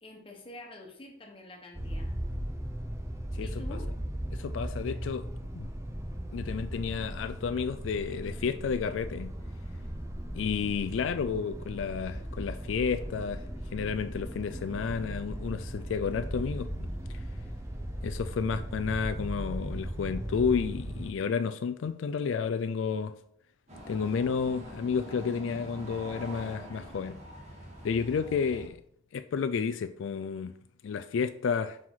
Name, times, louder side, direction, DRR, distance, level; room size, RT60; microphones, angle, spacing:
voice 1, 0.0-2.1 3.4-3.9, left 1 dB, 30° left, 1.2 m, -47 dB
sound 1, 1.7-21.1, equal, 15° right, 0.6 m, -37 dB
voice 2, 4.3-5.3 5.5-5.7 6.3-9.4 10.3-13.4 13.7-16.9 18.0-23.1 23.9-27.2 27.8-28.8 29.1-30.6 30.8-31.8, left 6 dB, 85° left, 0.4 m, -31 dB
sound 2, 23.7-28.7, right 1 dB, 35° right, 1.8 m, -44 dB
5.8 x 4.8 x 3.9 m
head